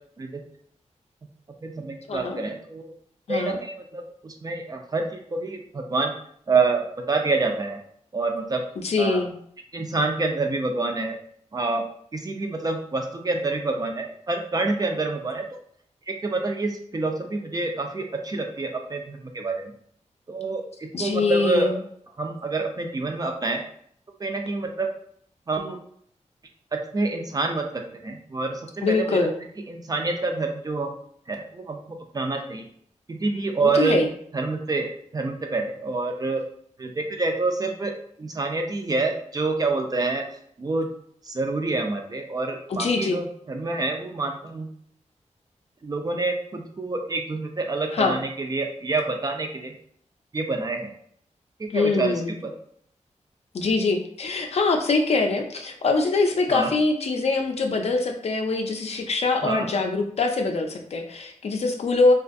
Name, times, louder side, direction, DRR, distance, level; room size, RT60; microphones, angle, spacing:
voice 1, 1.6-2.9 3.3-6.1 6.5-7.8 8.1-8.6 9.0-9.2 9.7-11.2 11.5-11.8 12.1-15.5 16.1-19.7 20.3-21.8 22.2-23.6 24.2-24.9 25.5-25.8 26.7-28.6 28.9-29.3 29.7-30.9 31.3-32.7 33.1-34.0 34.3-36.4 36.8-37.9 38.2-40.3 40.6-40.9 41.2-44.7 45.8-49.8 50.3-50.9 51.6-52.5 56.5-56.7 59.4-59.7, right 3 dB, 30° right, 3 dB, 0.3 m, -27 dB
voice 2, 3.3-3.6 8.8-9.3 20.9-21.8 28.8-29.4 33.6-34.1 42.7-43.2 47.9-48.2 51.7-52.3 53.5-62.1, left 3 dB, 55° left, 3 dB, 0.4 m, -23 dB
2.5 x 2.3 x 2.5 m, 0.64 s
wide cardioid pair, 135°, 13 cm